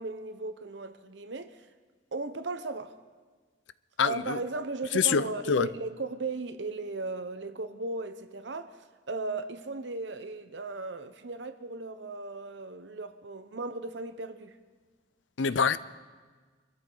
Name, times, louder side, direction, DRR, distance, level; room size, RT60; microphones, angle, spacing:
voice 1, 0.0-1.7 2.1-2.9 4.0-14.6, right 3 dB, 70° right, 0.9 m, -36 dB
voice 2, 4.0-4.4 4.9-5.7 15.4-15.8, left 6 dB, 90° left, 0.5 m, -25 dB
25.5 x 13.5 x 4.0 m
head